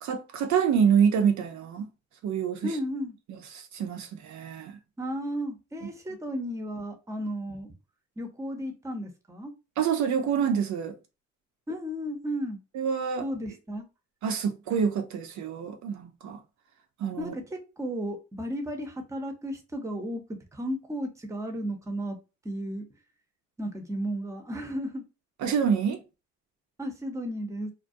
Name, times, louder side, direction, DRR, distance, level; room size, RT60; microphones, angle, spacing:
voice 1, 0.0-1.8 2.2-2.8 3.3-4.8 9.8-10.9 12.7-13.2 14.2-16.4 17.0-17.3 25.4-26.0, right 7 dB, 70° right, 0.6 m, -26 dB
voice 2, 2.6-3.2 5.0-7.7 8.2-9.5 11.7-12.6 13.2-13.9 17.2-22.2 22.4-22.9 23.6-25.0 26.8-27.7, equal, 10° right, 0.6 m, -34 dB
2.3 x 2.0 x 2.6 m
cardioid pair, 90°, 30 cm